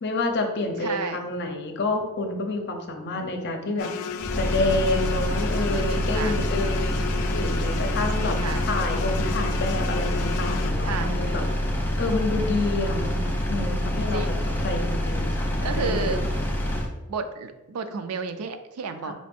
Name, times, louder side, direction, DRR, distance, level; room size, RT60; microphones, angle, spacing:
voice 1, 0.0-3.9 4.3-7.0 7.3-8.4 8.7-11.4 12.0-14.2 14.6-16.1 19.0-19.1, left 2 dB, 50° left, 3 dB, 0.6 m, -28 dB
voice 2, 0.8-1.2 5.9-6.4 8.1-8.7 10.8-11.2 14.1-14.5 15.6-16.5 17.1-19.1, right 4 dB, 85° right, 8 dB, 0.4 m, -32 dB
sound 1, 3.8-10.7, left 7 dB, 90° left, 0.3 m, -34 dB
Engine, 4.2-16.9, equal, 10° left, 0.5 m, -26 dB
5.1 x 2.5 x 3.5 m, 1.0 s
head